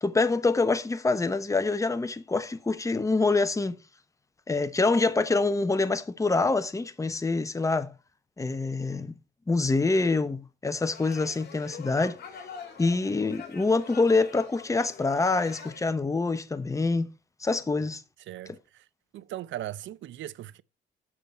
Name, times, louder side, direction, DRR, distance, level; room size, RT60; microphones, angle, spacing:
voice 1, 0.0-3.8 4.5-7.9 8.4-9.2 9.5-12.2 12.8-17.1 17.4-18.0, left 3 dB, 15° left, 0.9 m, -26 dB
sound 1, 10.8-15.8, left 6 dB, 55° left, 3.4 m, -45 dB
voice 2, 18.3-18.8 19.1-20.6, right 13 dB, 70° right, 0.6 m, -38 dB
7.4 x 6.7 x 4.4 m
cardioid pair, 90°, 20 cm